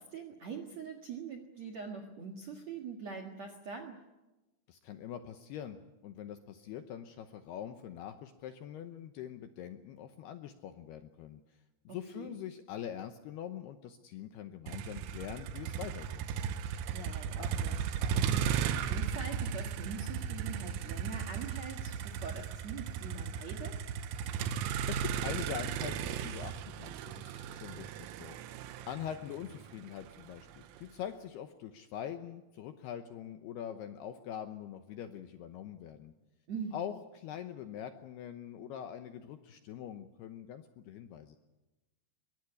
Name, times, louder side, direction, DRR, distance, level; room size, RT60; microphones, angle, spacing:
voice 1, 0.0-4.0 12.1-12.3 16.9-23.8 36.5-36.9, right 5 dB, 60° right, 2 dB, 1.8 m, -43 dB
voice 2, 4.7-11.6 11.8-16.2 24.9-36.1 36.7-41.4, left 9 dB, 75° left, 8 dB, 2.5 m, -43 dB
Motor vehicle (road), 14.7-30.8, right 8 dB, 90° right, 3.6 m, -36 dB
sound 1, 16.8-19.7 24.7-27.9, left 3 dB, 35° left, 5.5 m, -55 dB
Bass guitar, 18.9-25.1, equal, 45° right, 0.9 m, -52 dB
23.0 x 18.5 x 9.8 m, 1.1 s
omnidirectional pair, 5.7 m